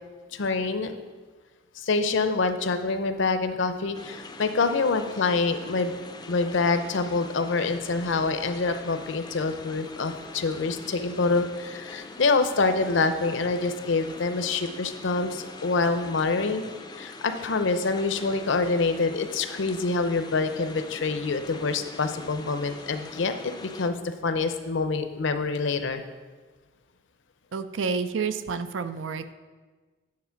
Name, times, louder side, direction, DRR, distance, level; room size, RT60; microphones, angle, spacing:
voice 1, 0.3-0.9 1.8-6.0 6.3-16.6 16.9-26.0, left 3 dB, 65° left, 9 dB, 0.6 m, -26 dB
sound 1, 3.9-23.9, left 3 dB, 20° left, 0.4 m, -43 dB
voice 2, 27.5-29.3, right 5 dB, 70° right, 11 dB, 0.5 m, -29 dB
9.6 x 4.0 x 5.7 m, 1.3 s
head